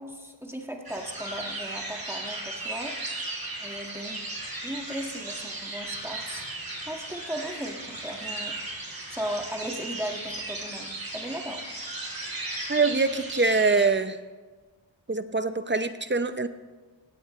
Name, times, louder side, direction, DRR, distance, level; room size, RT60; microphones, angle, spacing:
voice 1, 0.0-3.0 3.6-4.2 4.6-6.4 6.9-8.6 9.1-11.6, equal, 5° right, 1 dB, 1.7 m, -36 dB
sound 1, 0.9-13.9, right 2 dB, 50° right, 4.2 m, -36 dB
voice 2, 12.7-14.2 15.1-16.5, right 3 dB, 25° right, 11 dB, 0.7 m, -24 dB
17.0 x 16.5 x 3.2 m, 1.3 s
wide cardioid pair, 85°, 46 cm